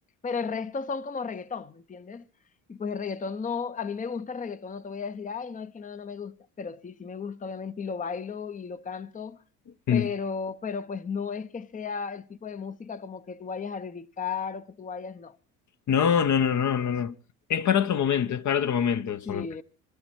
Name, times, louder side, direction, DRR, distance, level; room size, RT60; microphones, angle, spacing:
voice 1, 0.2-2.2 2.7-9.4 9.9-15.4 19.3-19.6, left 5 dB, 20° left, 0.8 m, -34 dB
voice 2, 15.9-17.1 17.5-19.5, left 8 dB, 45° left, 1.0 m, -24 dB
22.0 x 12.5 x 4.6 m
hypercardioid pair, 70°, 41 cm